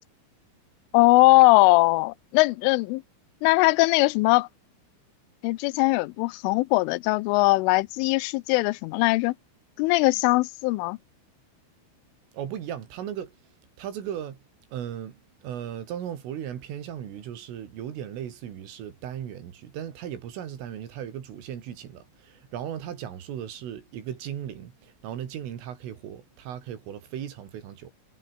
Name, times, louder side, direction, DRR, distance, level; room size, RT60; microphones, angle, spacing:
voice 1, 0.9-3.0 3.4-4.5 5.4-9.3 9.8-11.0, left 23 dB, 85° left, 3.2 m, -20 dB
voice 2, 12.3-13.4 13.8-14.4 14.7-27.9, right 9 dB, 85° right, 5.6 m, -37 dB
omnidirectional pair, 5.6 m